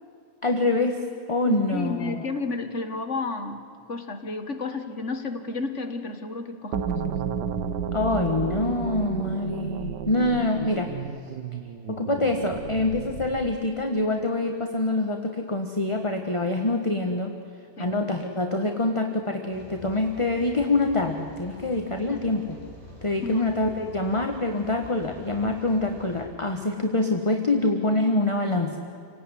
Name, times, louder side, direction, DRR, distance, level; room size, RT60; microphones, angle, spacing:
voice 1, 0.4-2.3 7.9-10.9 11.9-17.3 17.8-22.4 23.0-28.8, left 2 dB, 20° left, 4 dB, 1.3 m, -25 dB
voice 2, 1.5-3.6 3.9-7.0 17.8-17.9 22.1-22.3 23.2-23.5, left 3 dB, 40° left, 7 dB, 1.7 m, -32 dB
sound 1, 6.7-13.6, right 7 dB, 65° right, 1.6 m, -32 dB
Rain, 19.5-26.3, equal, 20° right, 5.5 m, -46 dB
28.5 x 18.0 x 10.0 m, 2.5 s
omnidirectional pair, 2.1 m